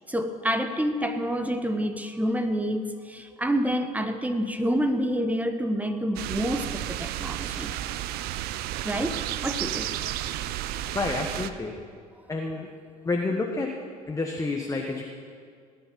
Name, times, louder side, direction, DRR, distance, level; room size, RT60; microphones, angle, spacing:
voice 1, 0.1-7.7 8.8-9.9, equal, 5° right, 7 dB, 1.2 m, -28 dB
sound 1, 6.2-11.5, right 13 dB, 50° right, 0.6 m, -32 dB
voice 2, 10.9-11.7 12.3-12.7 13.0-13.8 14.1-15.0, left 3 dB, 15° left, 1 dB, 1.3 m, -29 dB
17.0 x 10.5 x 5.4 m, 2.1 s
figure-of-eight pair, 60°, 20 cm